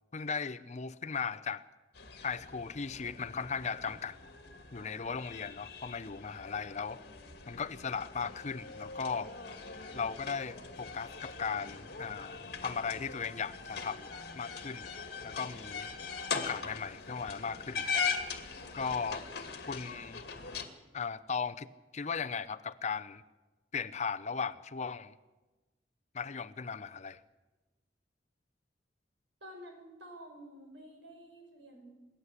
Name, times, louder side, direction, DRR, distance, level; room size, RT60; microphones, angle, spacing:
voice 1, 0.1-1.6 2.2-4.2 4.7-7.0 7.5-9.3 9.9-14.1 14.3-14.8 15.2-15.9 16.3-18.1 18.7-19.2 19.7-20.2 20.9-21.7 21.9-23.2 23.7-25.2 26.1-27.2, left 5 dB, 40° left, 0.6 m, -37 dB
sound 1, 1.9-20.6, left 5 dB, 60° left, 2.3 m, -41 dB
voice 2, 29.4-31.9, equal, 75° right, 6.2 m, -50 dB
28.0 x 11.5 x 8.3 m
head